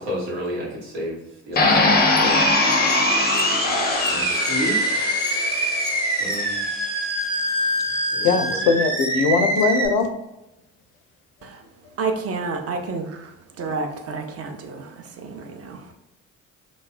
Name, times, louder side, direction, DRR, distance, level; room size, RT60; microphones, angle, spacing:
voice 1, 0.0-2.4 4.1-5.2 6.2-6.6 8.1-8.6, equal, 80° right, -4 dB, 1.0 m, -31 dB
sound 1, 1.6-6.6, left 3 dB, 25° left, 0.5 m, -22 dB
Animal, 1.9-9.9, right 1 dB, 15° right, 0.8 m, -24 dB
voice 2, 8.2-10.1 13.7-13.8, left 5 dB, 70° left, 6 dB, 0.5 m, -20 dB
voice 3, 12.0-15.9, right 4 dB, 35° right, 5 dB, 0.5 m, -30 dB
3.0 x 2.1 x 2.4 m, 0.89 s
hypercardioid pair, 45°, 41 cm